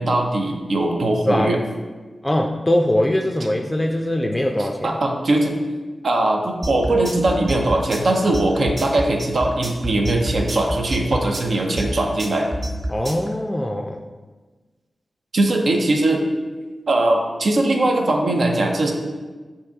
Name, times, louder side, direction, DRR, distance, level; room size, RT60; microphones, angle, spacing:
voice 1, 0.0-1.6 4.6-5.5 6.0-12.5 15.3-16.3 16.9-18.9, right 2 dB, 75° right, 2 dB, 0.6 m, -20 dB
voice 2, 2.2-5.0 12.9-14.0, left 1 dB, 20° left, 2 dB, 0.4 m, -21 dB
sound 1, 6.6-13.3, right 1 dB, 55° right, 0.9 m, -27 dB
5.4 x 2.7 x 3.4 m, 1.3 s
cardioid pair, 45°, 0 cm